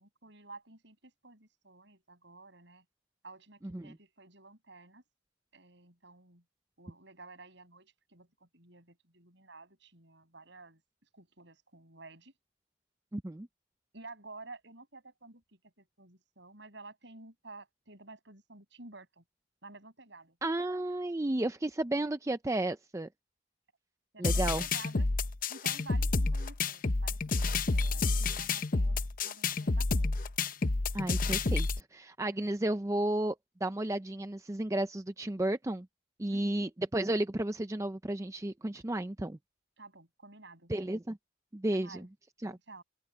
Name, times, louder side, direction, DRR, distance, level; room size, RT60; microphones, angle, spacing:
voice 1, 0.0-2.8 3.2-5.0 5.5-6.4 6.8-10.8 11.1-12.3 13.9-19.2 19.6-20.4 24.1-25.1 25.5-30.2 36.3-36.7 39.8-40.7 41.7-42.1 42.5-42.8, right 3 dB, 65° right, 7.7 m, -52 dB
voice 2, 13.1-13.5 20.4-23.1 24.2-24.6 30.9-33.4 33.6-35.9 36.2-39.4 40.7-41.2 41.5-42.1 42.4-42.6, right 1 dB, 15° right, 0.5 m, -33 dB
sound 1, 24.2-31.8, left 3 dB, 45° left, 0.8 m, -29 dB
open air
head